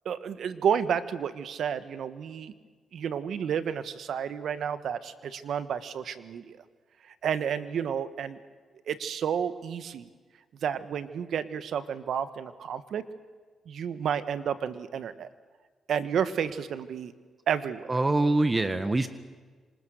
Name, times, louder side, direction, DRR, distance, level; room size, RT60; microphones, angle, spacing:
voice 1, 0.0-2.5 2.9-6.6 7.2-8.4 8.9-10.1 10.6-13.0 13.7-15.3 15.9-17.1 17.5-17.9, right 8 dB, 75° right, 12 dB, 1.4 m, -31 dB
voice 2, 17.9-19.1, right 2 dB, 25° right, 10 dB, 1.7 m, -24 dB
27.0 x 26.0 x 6.5 m, 1.4 s
supercardioid pair, 60°, 0 cm